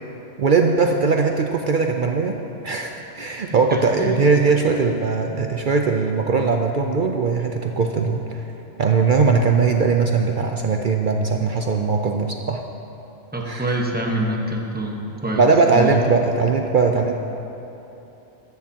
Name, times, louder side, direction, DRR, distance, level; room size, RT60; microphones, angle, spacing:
voice 1, 0.4-2.4 2.6-8.4 8.8-12.6 13.4-13.8 15.4-17.1, right 4 dB, 60° right, 3 dB, 0.5 m, -20 dB
voice 2, 3.7-4.2 13.3-15.4 15.7-15.9, right 1 dB, 10° right, -1 dB, 1.0 m, -26 dB
14.0 x 12.5 x 2.8 m, 3.0 s
omnidirectional pair, 1.4 m